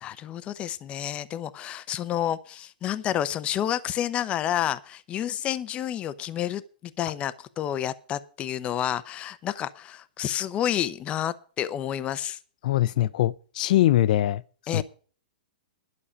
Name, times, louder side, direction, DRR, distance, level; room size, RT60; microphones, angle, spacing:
voice 1, 0.0-12.4 14.7-14.8, left 11 dB, 25° left, 0.7 m, -30 dB
voice 2, 12.6-14.4 14.7-14.8, left 13 dB, 55° left, 0.6 m, -22 dB
11.5 x 6.5 x 8.5 m
hypercardioid pair, 150°, 5 cm